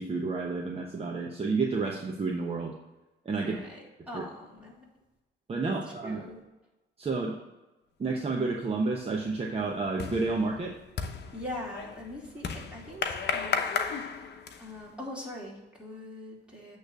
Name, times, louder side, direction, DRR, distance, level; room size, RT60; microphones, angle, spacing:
voice 1, 0.0-2.7 3.2-3.6 4.1-4.2 5.5-6.2 7.0-7.4 8.0-10.7, right 3 dB, 30° right, -1 dB, 1.0 m, -30 dB
voice 2, 3.4-4.9 5.6-5.7 6.0-6.4 11.3-14.3 14.6-16.8, left 1 dB, 5° right, -4 dB, 2.9 m, -42 dB
sound 1, 8.4-8.7 9.1-14.9, left 6 dB, 60° left, 0.9 m, -34 dB
8.8 x 3.3 x 6.7 m, 1.0 s
cardioid pair, 90°, 20 cm